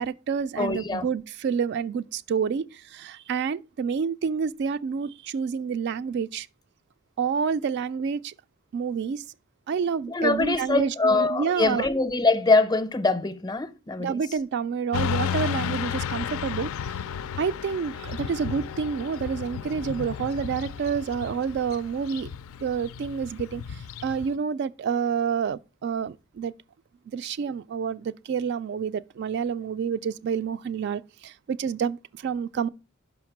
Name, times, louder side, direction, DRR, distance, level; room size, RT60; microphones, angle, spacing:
voice 1, 0.0-6.5 7.2-8.3 8.7-9.2 9.7-11.9 14.0-16.7 17.4-22.3 22.6-26.5 27.1-32.7, right 6 dB, 55° right, 0.3 m, -28 dB
voice 2, 0.6-1.1 10.1-14.2, left 3 dB, 20° left, 0.5 m, -23 dB
Motorcycle / Traffic noise roadway noise, 14.9-24.3, left 7 dB, 80° left, 0.4 m, -33 dB
5.7 x 5.1 x 5.9 m
head